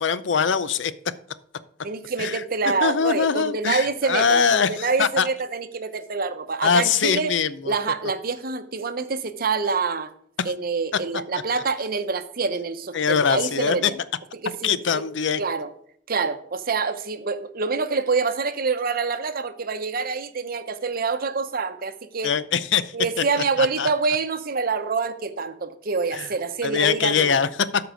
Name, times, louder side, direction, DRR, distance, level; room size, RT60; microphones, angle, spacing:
voice 1, 0.0-0.9 2.2-2.4 2.8-5.3 6.6-7.7 10.4-10.5 12.9-13.9 14.6-15.4 22.2-22.9 23.6-23.9 26.1-26.3 26.6-27.5, left 6 dB, 80° left, 0.6 m, -22 dB
voice 2, 1.8-7.3 7.6-10.1 10.4-14.0 14.4-15.0 15.4-15.7 16.1-22.3 22.9-27.4, right 4 dB, 55° right, 0.8 m, -26 dB
13.0 x 4.7 x 5.0 m
head